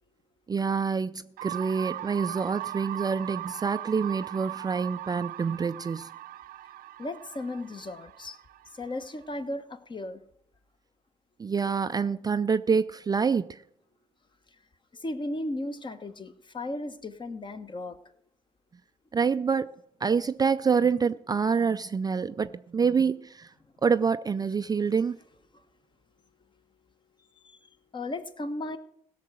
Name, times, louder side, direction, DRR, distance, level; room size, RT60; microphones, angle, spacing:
voice 1, 0.5-6.1 11.4-13.6 19.1-19.7 20.0-23.5 23.8-25.2, right 5 dB, 25° right, 0.4 m, -26 dB
sound 1, 1.4-9.2, right 14 dB, 70° right, 0.7 m, -39 dB
voice 2, 7.0-8.4 8.7-10.2 14.5-14.6 14.9-18.0 25.5-25.6 27.4-28.8, left 2 dB, 30° left, 1.3 m, -36 dB
16.0 x 6.7 x 6.3 m
hypercardioid pair, 60°, 15 cm